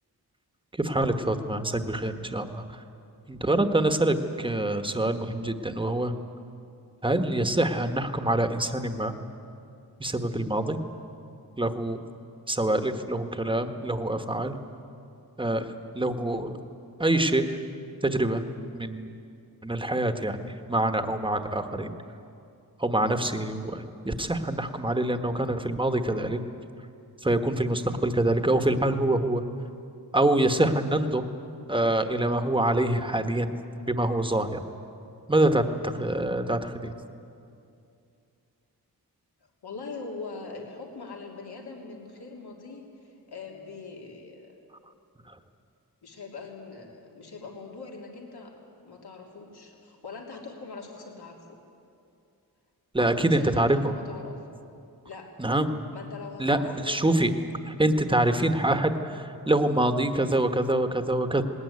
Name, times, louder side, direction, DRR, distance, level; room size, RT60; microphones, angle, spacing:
voice 1, 0.7-2.8 3.3-6.1 7.0-9.1 10.0-10.8 11.6-12.0 12.5-14.6 15.4-16.6 17.0-17.6 18.0-18.4 18.7-19.1 19.6-21.9 22.8-26.4 27.2-29.4 30.1-31.3 31.7-33.6 33.9-34.6 35.3-36.9 45.3-45.4 52.9-53.9 55.4-55.7 56.4-57.3 57.6-61.4, right 1 dB, 15° right, 7 dB, 1.2 m, -25 dB
voice 2, 39.6-44.5 46.0-48.5 48.8-51.4 53.0-54.3 55.0-55.3 55.9-57.0, left 4 dB, 80° left, 0 dB, 3.1 m, -42 dB
19.5 x 19.0 x 9.6 m, 2.6 s
wide cardioid pair, 120°, 38 cm